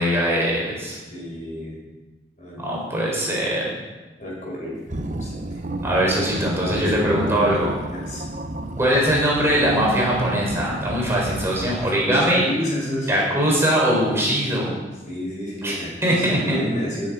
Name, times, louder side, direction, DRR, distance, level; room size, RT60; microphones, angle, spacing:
voice 1, 0.0-1.0 2.5-3.7 5.8-7.7 8.8-12.5 13.1-14.8 15.6-16.6, equal, 15° right, -4 dB, 3.9 m, -21 dB
voice 2, 1.1-1.8 2.4-2.7 4.2-5.6 6.6-7.5 7.9-8.2 11.8-13.3 15.0-17.1, equal, 45° left, -3 dB, 5.0 m, -30 dB
sound 1, 4.9-12.1, right 1 dB, 45° right, 0.8 m, -31 dB
18.5 x 7.3 x 5.1 m, 1.2 s
head